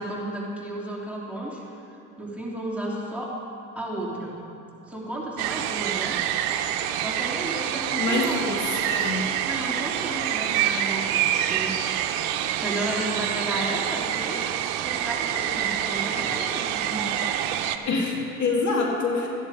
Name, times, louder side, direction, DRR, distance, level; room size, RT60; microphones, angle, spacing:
voice 1, 0.0-1.6 2.2-3.3 3.7-4.4 4.9-6.2 7.0-8.5 9.5-11.9 12.5-14.4 14.8-17.2, right 1 dB, 5° right, -5 dB, 2.9 m, -33 dB
sound 1, 5.4-17.8, right 10 dB, 75° right, 0.8 m, -27 dB
voice 2, 8.0-9.2 17.8-19.3, left 3 dB, 50° left, -1 dB, 2.3 m, -26 dB
13.5 x 10.5 x 4.9 m, 2.7 s
supercardioid pair, 75°, 37 cm